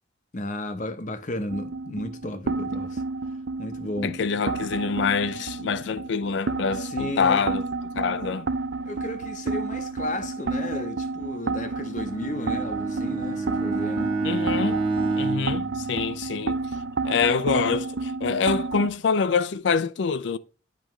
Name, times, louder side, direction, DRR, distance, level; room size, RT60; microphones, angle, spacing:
voice 1, 0.3-3.0 3.6-4.1 4.6-4.7 6.7-7.5 8.9-14.1, left 1 dB, 40° left, 0.7 m, -33 dB
sound 1, 1.5-18.9, right 3 dB, 75° right, 0.5 m, -31 dB
voice 2, 4.0-7.6 8.0-8.5 14.2-14.8 15.2-16.6 17.0-20.4, left 5 dB, 75° left, 0.4 m, -25 dB
Bowed string instrument, 12.0-16.6, right 3 dB, 25° right, 1.3 m, -29 dB
9.1 x 5.0 x 3.0 m
head